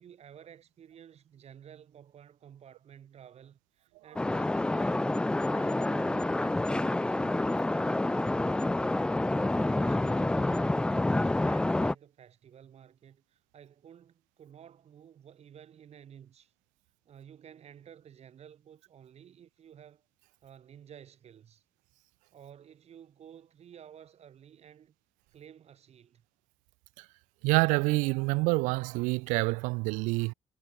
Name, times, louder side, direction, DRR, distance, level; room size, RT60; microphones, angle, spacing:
voice 1, 0.0-5.2 5.5-16.5 17.0-20.1 20.4-21.6 22.3-24.9 25.3-26.2, right 9 dB, 50° right, 6.4 m, -53 dB
sound 1, 4.2-11.9, left 2 dB, 5° left, 0.3 m, -28 dB
voice 2, 27.4-30.3, right 26 dB, 65° right, 0.6 m, -27 dB
figure-of-eight pair, 50°, 14 cm